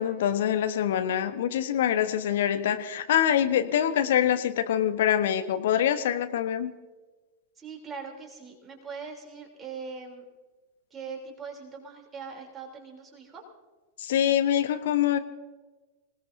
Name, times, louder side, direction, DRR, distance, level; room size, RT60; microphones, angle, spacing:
voice 1, 0.0-6.7 14.0-15.2, left 10 dB, 60° left, 9 dB, 1.1 m, -25 dB
voice 2, 7.6-10.2 10.9-13.4, right 5 dB, 20° right, 0 dB, 3.4 m, -41 dB
26.0 x 18.0 x 2.7 m, 1.3 s
figure-of-eight pair, 90°, 0 cm